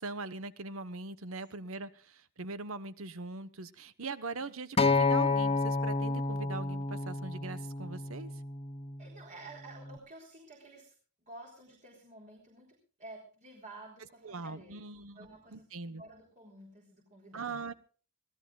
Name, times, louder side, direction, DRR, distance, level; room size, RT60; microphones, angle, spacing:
voice 1, 0.0-8.3 14.2-16.0 17.3-17.7, right 3 dB, 70° right, 14 dB, 1.1 m, -41 dB
Acoustic guitar, 4.8-9.0 9.9-10.0, left 3 dB, 25° left, 0.9 m, -30 dB
voice 2, 9.0-10.9 11.2-14.8 15.2-15.7 16.0-17.6, right 2 dB, 35° right, 1 dB, 3.9 m, -51 dB
25.0 x 17.0 x 2.4 m, 0.40 s
head